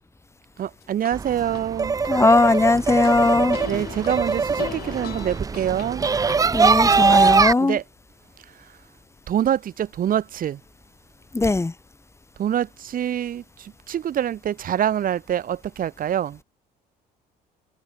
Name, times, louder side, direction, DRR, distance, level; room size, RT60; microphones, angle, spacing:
sound 1, 0.6-1.6 2.0-3.1 3.5-6.4, left 13 dB, 65° left, 3.3 m, -37 dB
voice 1, 0.6-2.0 3.7-6.1 7.0-7.2 7.6-7.8 9.3-10.6 12.4-16.4, right 10 dB, 55° right, 8.0 m, -25 dB
sound 2, 1.1-7.5, right 5 dB, 20° right, 0.6 m, -21 dB
voice 2, 2.1-3.6 6.5-7.8 11.3-11.7, left 3 dB, 15° left, 4.1 m, -19 dB
cardioid pair, 110°, 17 cm